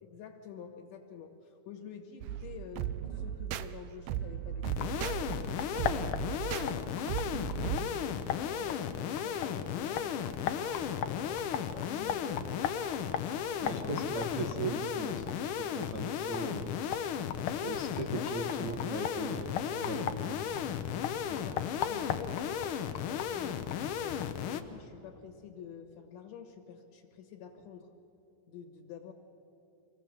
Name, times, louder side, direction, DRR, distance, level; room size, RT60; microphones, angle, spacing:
voice 1, 0.0-11.5 11.8-12.5 13.6-14.1 18.1-18.3 21.2-23.7 24.0-27.9 28.5-29.1, left 7 dB, 65° left, 3 dB, 2.3 m, -48 dB
sound 1, 2.2-7.9, right 11 dB, 80° right, 1.6 m, -37 dB
sound 2, 2.6-15.0, left 2 dB, 25° left, 0.9 m, -54 dB
sound 3, 4.6-24.6, left 8 dB, 85° left, 1.2 m, -34 dB
voice 2, 13.6-16.7 17.6-20.4, right 3 dB, 60° right, 2 dB, 1.1 m, -38 dB
25.0 x 17.0 x 7.3 m, 2.9 s
omnidirectional pair, 3.5 m